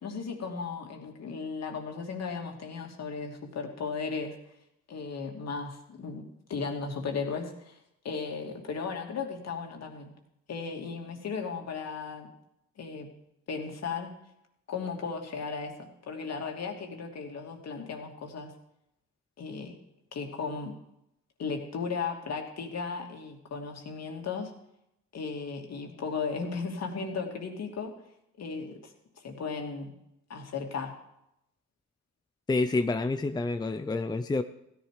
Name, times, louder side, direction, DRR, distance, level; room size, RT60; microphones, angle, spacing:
voice 1, 0.0-4.4 4.9-7.8 8.0-10.1 10.5-12.3 12.8-13.1 13.5-14.1 14.7-18.5 19.4-19.8 20.1-20.7 21.4-24.5 25.1-27.9 28.4-29.9 30.3-30.9, left 5 dB, 60° left, 2 dB, 2.8 m, -36 dB
voice 2, 32.5-34.4, left 3 dB, 15° left, 9 dB, 0.6 m, -28 dB
16.0 x 11.0 x 5.0 m, 0.82 s
cardioid pair, 90°, 30 cm